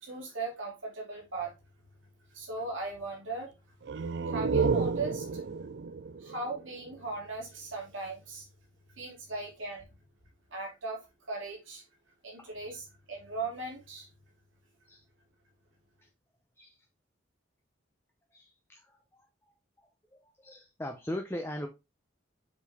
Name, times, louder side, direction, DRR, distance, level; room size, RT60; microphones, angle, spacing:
voice 1, 0.0-1.5 2.3-3.5 4.3-5.4 6.2-8.5 9.0-9.8 10.5-11.8 12.2-14.1, right 3 dB, 80° right, 2.7 m, -38 dB
sound 1, 3.8-7.4, right 4 dB, 60° right, 0.4 m, -31 dB
voice 2, 12.4-12.7 14.9-15.0 16.6-16.7 18.3-18.5 19.1-19.2 20.4-21.7, left 1 dB, 10° left, 0.7 m, -38 dB
7.3 x 4.3 x 3.5 m
head